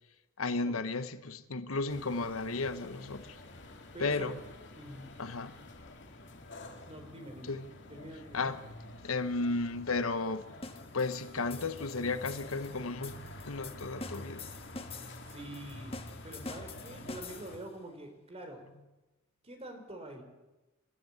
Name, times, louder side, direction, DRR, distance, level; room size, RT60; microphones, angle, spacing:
voice 1, 0.4-3.4 4.0-4.4 5.2-5.6 7.4-7.7 8.3-8.6 9.0-10.5 10.9-13.2 13.5-14.4, left 3 dB, 90° left, 1.2 m, -34 dB
sound 1, 1.9-17.6, left 1 dB, 60° left, 2.5 m, -49 dB
voice 2, 3.9-4.4 4.8-5.1 6.9-7.5 7.9-8.4 15.3-15.9 16.2-18.6 19.4-20.2, right 1 dB, 30° right, 3.9 m, -46 dB
sound 2, 10.6-17.7, left 3 dB, 30° left, 1.6 m, -47 dB
27.0 x 13.5 x 8.2 m
head